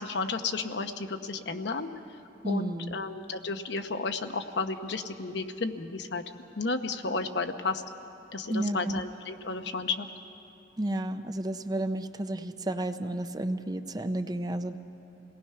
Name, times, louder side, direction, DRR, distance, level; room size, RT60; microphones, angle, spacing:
voice 1, 0.0-1.9 2.4-6.2 6.6-7.8 8.3-10.1, left 3 dB, 70° left, 7 dB, 0.9 m, -32 dB
voice 2, 2.4-3.0 8.5-9.0 10.8-14.8, right 1 dB, 20° right, 9 dB, 0.6 m, -32 dB
27.5 x 19.0 x 5.7 m, 2.8 s
head